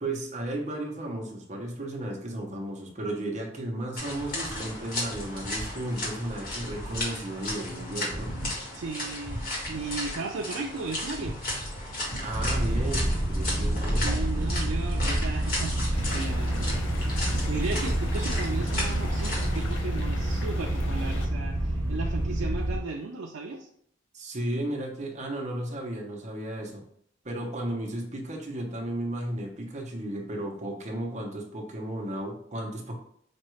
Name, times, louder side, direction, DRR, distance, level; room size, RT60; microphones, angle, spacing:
voice 1, 0.0-8.3 12.2-14.1 24.1-26.8 27.2-32.9, right 1 dB, 40° right, 0 dB, 0.8 m, -34 dB
sound 1, 4.0-19.8, left 1 dB, 50° left, 1.3 m, -35 dB
voice 2, 8.7-11.4 14.0-16.9 17.5-23.7, right 4 dB, 80° right, 1 dB, 0.4 m, -35 dB
sound 2, 12.3-22.8, right 1 dB, 10° left, 1.3 m, -28 dB
sound 3, 15.9-21.3, left 2 dB, 75° left, 0.7 m, -41 dB
5.2 x 2.4 x 3.1 m, 0.66 s
head